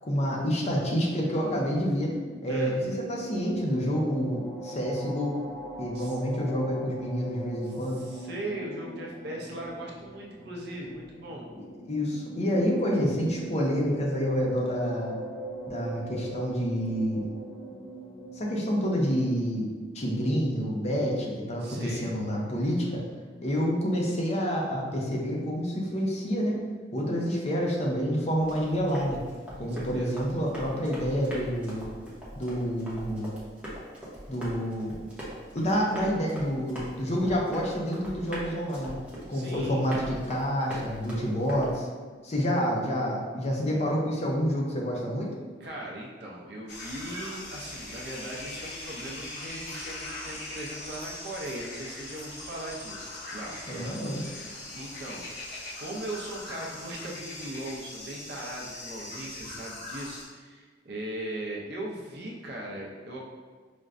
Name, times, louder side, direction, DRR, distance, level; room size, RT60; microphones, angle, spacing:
voice 1, 0.0-2.1 2.4-5.4 5.8-8.0 11.6-15.2 15.7-17.3 18.3-19.7 19.9-23.1 23.4-26.6 26.9-29.2 29.6-31.9 32.4-33.3 34.3-34.9 35.5-39.0 39.3-41.9 42.2-45.4 53.7-54.2, equal, 40° left, -2 dB, 0.6 m, -28 dB
sound 1, 1.8-19.1, right 1 dB, 10° left, 1.0 m, -41 dB
voice 2, 2.5-2.8 5.9-6.2 7.6-11.5 21.6-22.1 29.6-30.1 39.3-39.8 45.6-53.9 54.5-55.2 55.8-63.3, right 1 dB, 60° right, -3 dB, 0.5 m, -39 dB
Run, 28.4-41.7, equal, 5° right, 0.8 m, -42 dB
sound 2, 46.7-60.2, left 2 dB, 65° left, 1.0 m, -41 dB
4.9 x 2.1 x 2.4 m, 1.5 s
head